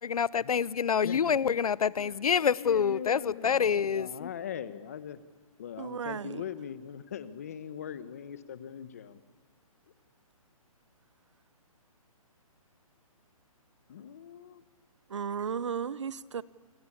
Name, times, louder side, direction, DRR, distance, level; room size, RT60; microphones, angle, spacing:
voice 1, 0.0-4.3, left 7 dB, 85° left, 0.7 m, -27 dB
voice 2, 1.0-1.5 2.3-5.2 5.6-9.2 13.9-14.6, left 8 dB, 25° left, 0.9 m, -41 dB
voice 3, 5.8-6.5 15.1-16.4, right 7 dB, 55° right, 0.8 m, -34 dB
27.0 x 23.0 x 8.6 m
hypercardioid pair, 175°, 18 cm